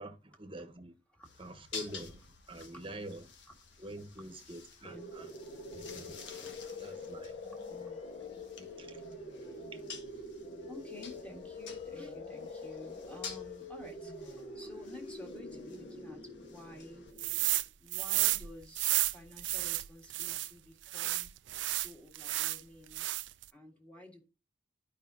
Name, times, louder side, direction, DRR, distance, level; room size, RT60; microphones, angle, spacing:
voice 1, 0.0-0.9 1.4-2.2 2.5-3.2 3.8-5.2 5.7-6.1 6.8-7.4 8.6-9.0, right 1 dB, 30° right, 1.2 m, -46 dB
voice 2, 1.1-1.5 2.7-2.9 3.4-4.3 4.8-5.4 6.4-6.5 7.5-9.7 10.7-17.1 17.8-21.3 21.7-23.1 23.5-24.3, left 1 dB, 5° left, 1.8 m, -52 dB
sound 1, 1.2-17.1, left 5 dB, 80° left, 1.6 m, -51 dB
sound 2, 4.8-17.6, left 2 dB, 35° left, 1.2 m, -45 dB
sound 3, 17.2-17.7 17.9-20.5 20.9-22.6 22.9-23.4, right 17 dB, 80° right, 0.5 m, -32 dB
12.0 x 5.1 x 2.7 m
head